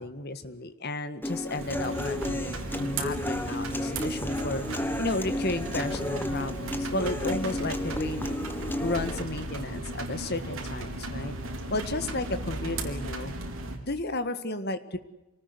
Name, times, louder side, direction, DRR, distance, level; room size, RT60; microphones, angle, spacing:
voice 1, 0.0-8.4 8.8-11.3 11.7-13.4 13.9-15.0, left 2 dB, 45° left, 11 dB, 1.8 m, -33 dB
Human voice / Acoustic guitar, 1.2-9.2, left 1 dB, 10° left, 1.3 m, -33 dB
sound 1, 1.6-13.8, right 2 dB, 60° right, 4.5 m, -36 dB
26.5 x 19.0 x 8.0 m, 0.99 s
head